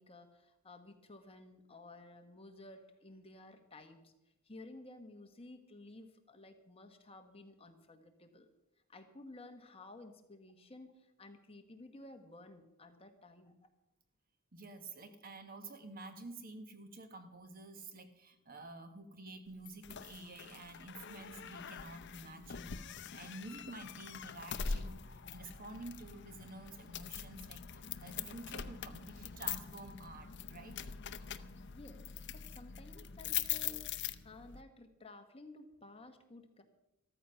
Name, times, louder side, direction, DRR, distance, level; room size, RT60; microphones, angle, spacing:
voice 1, 0.0-4.1 4.4-8.5 8.9-13.6 31.7-36.6, left 2 dB, 25° left, 6 dB, 1.3 m, -54 dB
voice 2, 14.5-30.8, right 2 dB, 40° right, 8 dB, 1.4 m, -50 dB
sound 1, 19.6-34.6, left 8 dB, 50° left, 0.6 m, -43 dB
13.5 x 13.5 x 5.7 m, 0.90 s
head